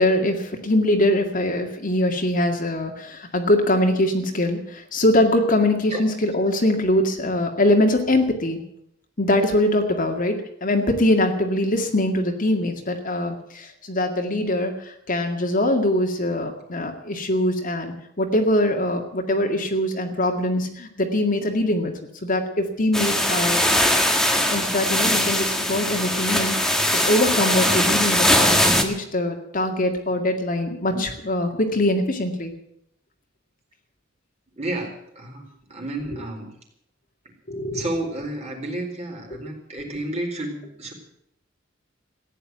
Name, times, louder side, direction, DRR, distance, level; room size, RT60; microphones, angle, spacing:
voice 1, 0.0-8.6 9.2-23.7 24.5-32.5 37.5-37.8, left 1 dB, 45° left, 3 dB, 2.1 m, -22 dB
sound 1, 22.9-28.8, left 1 dB, 5° left, 1.6 m, -20 dB
voice 2, 34.5-36.5 37.7-40.9, right 1 dB, 35° right, 1 dB, 4.2 m, -31 dB
15.0 x 9.9 x 9.4 m, 0.74 s
head